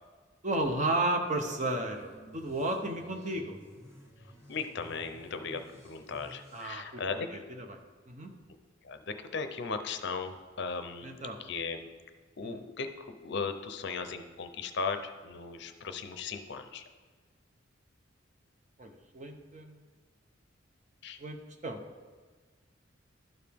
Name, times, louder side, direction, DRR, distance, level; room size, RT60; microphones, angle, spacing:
voice 1, 0.4-3.5 6.5-7.0 7.3-7.8 8.1-8.3 11.0-11.4 12.4-12.6 18.8-19.8 21.2-21.4 21.6-21.8, right 2 dB, 40° right, 4 dB, 0.8 m, -33 dB
sound 1, 1.2-6.7, equal, 15° right, 1.3 m, -54 dB
voice 2, 4.5-7.3 8.8-11.9 12.4-16.8 21.0-21.2, left 5 dB, 60° left, 8 dB, 0.6 m, -37 dB
12.0 x 4.8 x 3.5 m, 1.4 s
head